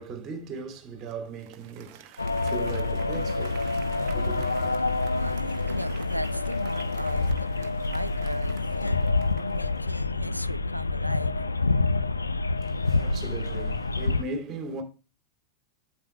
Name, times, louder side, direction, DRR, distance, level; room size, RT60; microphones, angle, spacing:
voice 1, 0.0-3.7 4.1-4.7 12.6-14.8, right 4 dB, 30° right, 2.6 m, -38 dB
Applause, 1.0-9.9, right 11 dB, 45° right, 0.9 m, -50 dB
sound 1, 2.2-14.2, left 3 dB, 80° left, 0.5 m, -27 dB
voice 2, 4.7-9.0 9.3-11.4, equal, 90° right, 0.4 m, -37 dB
8.8 x 7.6 x 3.0 m
figure-of-eight pair, 90°, 0 cm